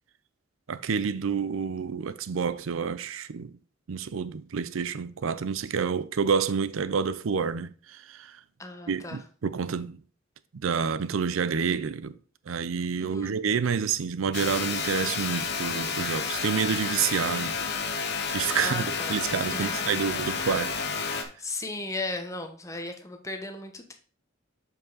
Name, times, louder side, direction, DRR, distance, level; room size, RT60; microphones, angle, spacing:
voice 1, 0.7-3.5 3.9-8.4 8.9-10.0 10.5-12.2 12.5-17.6 18.3-20.7, right 6 dB, 85° right, 0.5 m, -28 dB
voice 2, 8.6-9.2 13.0-13.3 18.6-19.2 19.5-19.9 21.4-23.9, left 2 dB, 15° left, 1.0 m, -36 dB
sound 1, 14.3-21.2, left 5 dB, 55° left, 1.0 m, -30 dB
7.3 x 5.4 x 4.0 m
head